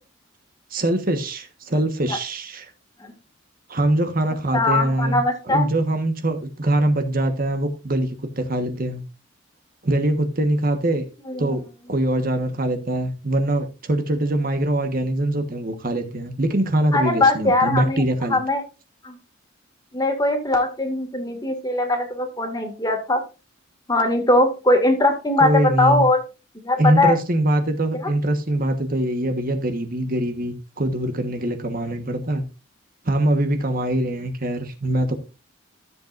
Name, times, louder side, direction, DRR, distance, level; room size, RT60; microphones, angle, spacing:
voice 1, 0.7-2.7 3.7-9.0 9.8-11.0 11.4-11.6 11.9-18.4 25.4-26.1 26.8-32.4 33.0-35.2, right 1 dB, 45° right, 1.4 m, -23 dB
voice 2, 4.5-5.7 11.3-11.5 16.9-18.0 18.3-18.6 19.0-19.1 19.9-23.2 23.9-26.2 26.5-27.1 28.0-28.1, left 2 dB, 20° left, 2.2 m, -20 dB
14.0 x 7.8 x 2.6 m
head